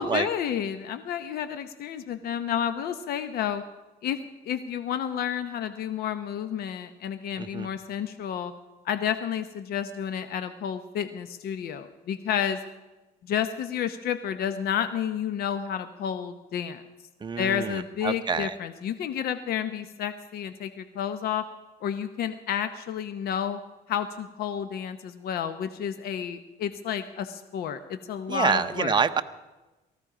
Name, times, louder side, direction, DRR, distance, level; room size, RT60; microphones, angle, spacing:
voice 1, 0.0-3.6 4.0-8.5 8.8-12.6 13.2-16.8 17.4-21.4 21.8-23.6 23.9-29.0, left 9 dB, 65° left, 10 dB, 0.8 m, -30 dB
voice 2, 7.4-7.7 17.2-18.5 28.3-29.2, right 6 dB, 25° right, 9 dB, 0.8 m, -27 dB
18.5 x 14.5 x 5.0 m, 1.1 s
cardioid pair, 110°, 17 cm